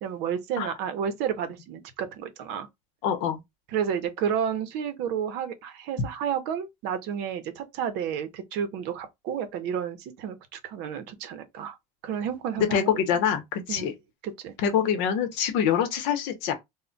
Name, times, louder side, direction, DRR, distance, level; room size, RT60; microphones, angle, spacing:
voice 1, 0.0-2.7 3.7-11.8 12.0-12.9 13.7-13.9 14.2-14.5, right 8 dB, 60° right, 0.6 m, -31 dB
voice 2, 3.0-3.4 12.6-13.9 14.6-16.5, left 8 dB, 65° left, 0.8 m, -25 dB
2.1 x 2.1 x 3.7 m
cardioid pair, 145°, 20 cm